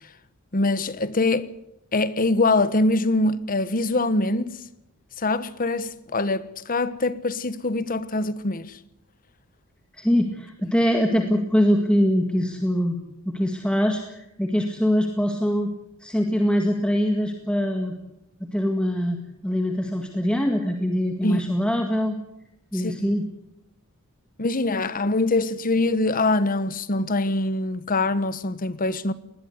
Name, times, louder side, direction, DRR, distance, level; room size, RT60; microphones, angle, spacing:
voice 1, 0.5-1.5 1.9-4.5 5.2-8.8 10.6-10.7 21.2-21.4 22.7-23.2 24.4-29.1, left 2 dB, 40° left, 1.1 m, -24 dB
voice 2, 9.9-13.0 13.3-15.7 16.0-18.0 18.4-22.2 22.7-23.3, equal, 5° left, 1.9 m, -23 dB
20.0 x 20.0 x 8.1 m
head